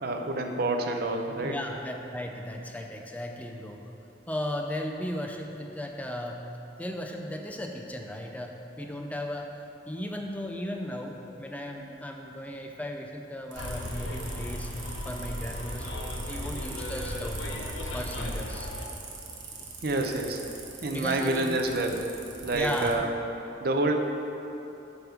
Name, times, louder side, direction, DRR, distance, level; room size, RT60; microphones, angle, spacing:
voice 1, 0.0-1.6 19.8-22.0 22.4-23.1 23.6-24.0, right 2 dB, 50° right, 3 dB, 0.6 m, -28 dB
voice 2, 1.4-3.8 4.3-6.5 6.8-9.5 9.9-14.7 15.1-17.4 17.9-18.7 20.9-21.6 22.5-22.9, left 1 dB, 10° left, 2 dB, 0.4 m, -36 dB
sound 1, 13.5-22.9, right 4 dB, 75° right, 1.0 m, -43 dB
Bus, 13.6-18.9, left 1 dB, 90° left, 0.8 m, -36 dB
9.2 x 3.6 x 5.8 m, 2.9 s
head